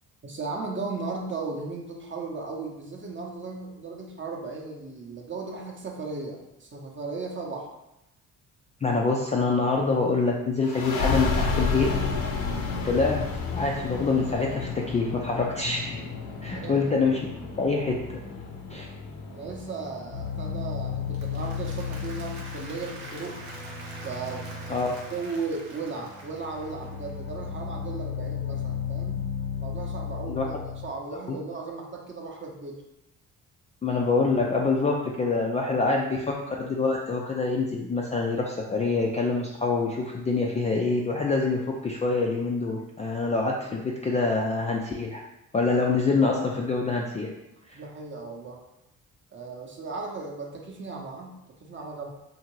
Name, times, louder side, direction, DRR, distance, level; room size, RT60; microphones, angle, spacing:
voice 1, 0.2-7.7 16.1-16.2 16.5-16.8 19.3-23.4 24.0-29.3 29.6-32.8 47.7-48.6 49.3-52.1, right 4 dB, 30° right, 0 dB, 0.7 m, -36 dB
voice 2, 8.8-11.9 12.8-13.2 13.5-16.0 16.4-17.2 17.6-18.0 18.7-18.9 24.7-24.9 30.3-30.4 31.3-31.4 33.8-45.2 45.5-47.3 47.7-47.8, left 3 dB, 20° left, -1 dB, 0.3 m, -25 dB
sound 1, 10.6-21.9, left 4 dB, 60° left, 0.6 m, -32 dB
sound 2, 20.1-30.9, left 7 dB, 85° left, 0.9 m, -34 dB
Applause, 20.9-27.2, right 2 dB, 75° right, 0.8 m, -45 dB
2.7 x 2.5 x 3.0 m, 0.89 s
hypercardioid pair, 55°, 40 cm